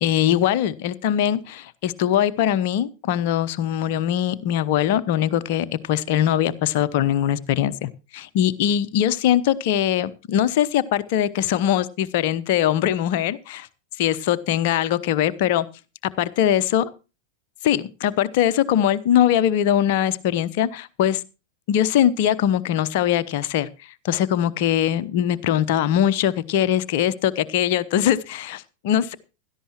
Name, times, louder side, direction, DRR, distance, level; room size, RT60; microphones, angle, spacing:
voice 1, 0.0-13.7 14.0-15.7 16.2-16.8 17.6-21.2 21.7-23.7 24.0-29.1, left 11 dB, 50° left, 14 dB, 0.9 m, -21 dB
16.5 x 13.0 x 3.0 m, 0.31 s
figure-of-eight pair, 90°, 0 cm